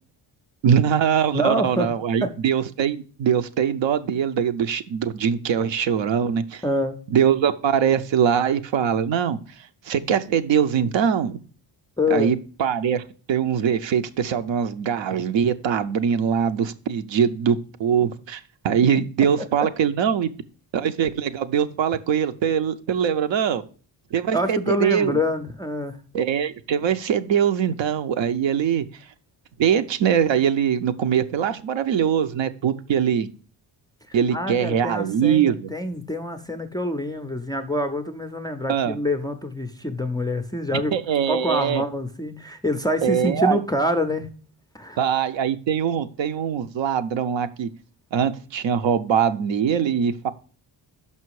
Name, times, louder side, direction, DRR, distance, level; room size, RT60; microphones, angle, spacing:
voice 1, 0.6-6.6 7.1-9.4 9.9-11.4 12.1-20.3 20.7-23.6 24.1-25.2 26.1-28.8 29.6-33.3 34.1-35.7 38.7-39.0 40.9-41.8 43.0-43.6 45.0-47.7 48.1-50.3, right 8 dB, 75° right, 0.7 m, -22 dB
voice 2, 1.3-1.9 2.2-2.4 6.6-7.0 12.0-12.3 19.4-19.7 24.3-26.0 34.1-40.9 41.3-44.3 44.7-45.0, left 1 dB, 10° left, 0.3 m, -26 dB
6.0 x 5.6 x 4.6 m
wide cardioid pair, 170°, 46 cm